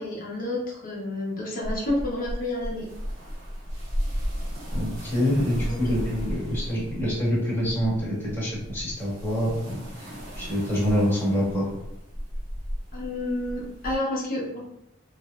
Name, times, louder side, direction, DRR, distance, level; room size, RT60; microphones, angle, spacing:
voice 1, 0.0-2.9 5.7-5.9 12.9-14.6, left 1 dB, 45° left, -4 dB, 0.8 m, -30 dB
sound 1, 1.6-14.0, equal, 85° right, 0.9 m, -35 dB
voice 2, 4.7-10.1 10.4-11.7, equal, 10° left, -9 dB, 1.2 m, -26 dB
3.1 x 2.0 x 2.3 m, 0.84 s
head